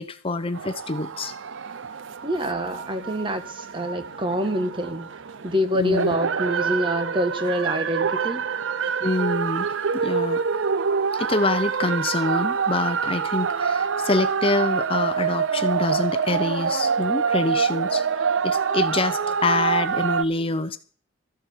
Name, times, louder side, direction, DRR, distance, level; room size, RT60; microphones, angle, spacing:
voice 1, 0.0-1.3 5.7-6.2 9.0-9.7 9.9-10.4 11.1-20.8, left 2 dB, 30° left, 0.7 m, -26 dB
sound 1, 0.5-20.2, right 6 dB, 85° right, 0.6 m, -26 dB
voice 2, 2.2-5.1 5.4-8.4, equal, 25° right, 1.5 m, -26 dB
13.5 x 7.9 x 7.2 m
head